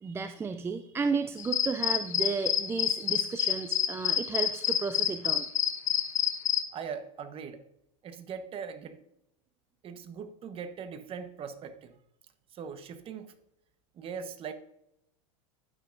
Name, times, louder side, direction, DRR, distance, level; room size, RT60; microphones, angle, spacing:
voice 1, 0.0-5.5, right 5 dB, 15° right, 9 dB, 0.4 m, -33 dB
sound 1, 1.4-6.6, left 9 dB, 85° left, 0.9 m, -28 dB
voice 2, 6.7-7.6 8.0-9.0 9.8-11.9 12.5-13.3 13.9-14.5, right 6 dB, 35° right, 10 dB, 1.1 m, -40 dB
11.0 x 9.4 x 2.6 m, 0.81 s
hypercardioid pair, 100°, 16 cm